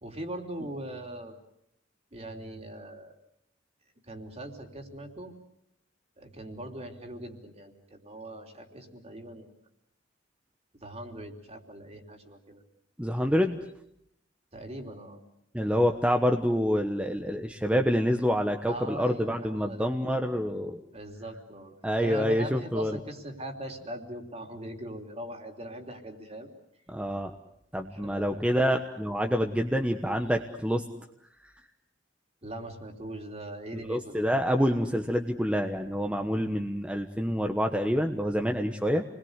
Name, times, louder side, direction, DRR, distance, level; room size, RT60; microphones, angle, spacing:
voice 1, 0.0-1.3 2.1-3.1 4.1-5.3 6.2-9.5 10.8-12.6 14.5-15.2 18.7-19.9 20.9-26.5 28.0-28.4 32.4-34.2, right 1 dB, 35° right, 4 dB, 3.4 m, -41 dB
voice 2, 13.0-13.6 15.5-20.8 21.8-23.0 26.9-27.3 27.7-30.8 31.4-31.5 33.7-39.0, equal, 5° right, 4 dB, 1.2 m, -27 dB
29.0 x 21.0 x 8.2 m, 0.76 s
head